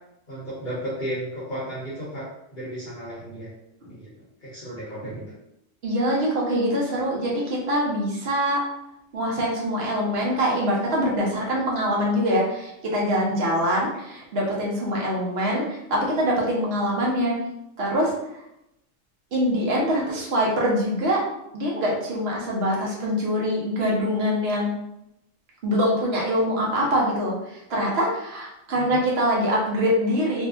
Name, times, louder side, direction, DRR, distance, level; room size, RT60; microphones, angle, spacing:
voice 1, 0.3-2.3 2.5-3.5 3.9-4.1 4.4-5.3 28.7-29.0, equal, 45° left, -8 dB, 0.7 m, -33 dB
voice 2, 5.8-8.6 9.1-17.3 17.8-18.1 19.3-21.2 21.5-24.7 25.6-30.5, equal, 55° right, -3 dB, 0.8 m, -24 dB
2.7 x 2.4 x 2.3 m, 0.83 s
omnidirectional pair, 1.4 m